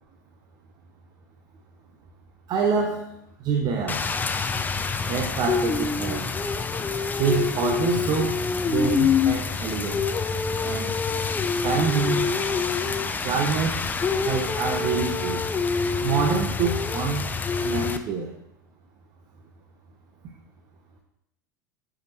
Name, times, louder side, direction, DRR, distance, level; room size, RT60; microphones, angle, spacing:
voice 1, 2.5-3.1 3.4-4.1 5.1-6.3 7.2-8.4 8.7-10.0 10.6-10.9 11.6-12.3 13.2-13.9 14.2-15.4 16.0-17.3 17.6-18.3, right 5 dB, 40° right, 2 dB, 0.9 m, -26 dB
Rain, 3.9-18.0, left 5 dB, 15° left, 0.5 m, -26 dB
10.5 x 4.9 x 3.1 m, 0.79 s
figure-of-eight pair, 80°, 11 cm